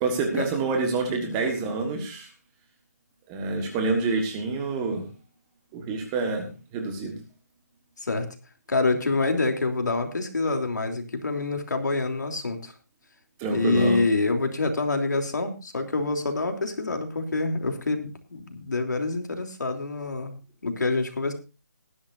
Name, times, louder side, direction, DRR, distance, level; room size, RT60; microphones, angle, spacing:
voice 1, 0.0-2.3 3.3-5.1 5.7-7.2 13.4-14.0, right 3 dB, 10° right, 5 dB, 1.5 m, -27 dB
voice 2, 8.7-12.7 13.5-21.3, left 3 dB, 80° left, 4 dB, 3.3 m, -26 dB
19.0 x 12.0 x 2.7 m, 0.30 s
hypercardioid pair, 175°, 10 cm